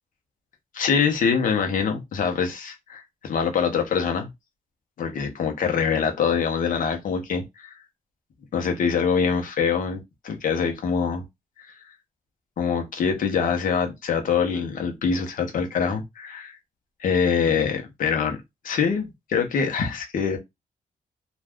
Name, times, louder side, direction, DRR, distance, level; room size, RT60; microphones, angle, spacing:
voice 1, 0.7-4.3 5.0-7.8 8.5-11.2 12.6-16.6 17.0-18.4 18.6-20.4, left 6 dB, 65° left, 0.8 m, -24 dB
2.5 x 2.3 x 3.4 m
wide cardioid pair, 155°, 15 cm